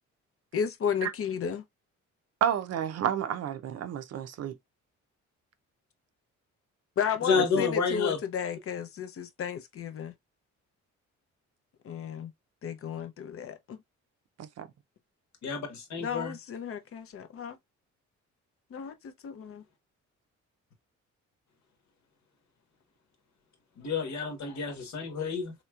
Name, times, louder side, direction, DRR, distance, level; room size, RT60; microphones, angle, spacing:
voice 1, 0.5-1.6 7.0-10.1 11.8-12.3 12.6-13.8 16.0-17.6 18.7-19.6, left 7 dB, 50° left, 0.6 m, -33 dB
voice 2, 2.4-4.5 7.3-7.6 14.4-14.7, right 9 dB, 55° right, 0.5 m, -31 dB
voice 3, 7.2-8.2 15.4-16.3 23.8-25.5, left 5 dB, 65° left, 1.2 m, -29 dB
3.2 x 2.9 x 2.3 m
cardioid pair, 90°, 30 cm